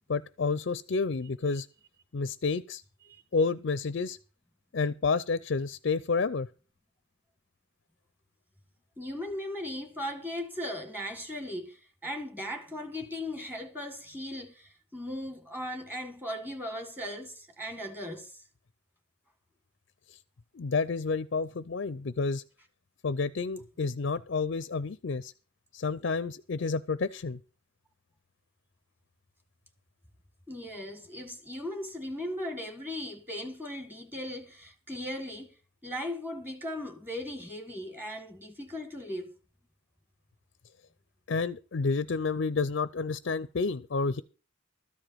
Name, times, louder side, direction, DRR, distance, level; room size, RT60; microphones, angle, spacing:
voice 1, 0.1-1.7 2.1-2.8 3.3-4.2 4.7-6.5 20.5-22.4 23.0-25.3 25.7-27.4 41.3-44.2, left 4 dB, 60° left, 0.5 m, -30 dB
voice 2, 9.0-18.3 30.5-35.5 35.8-39.3, left 1 dB, 10° right, 1.7 m, -38 dB
13.5 x 5.0 x 9.1 m
head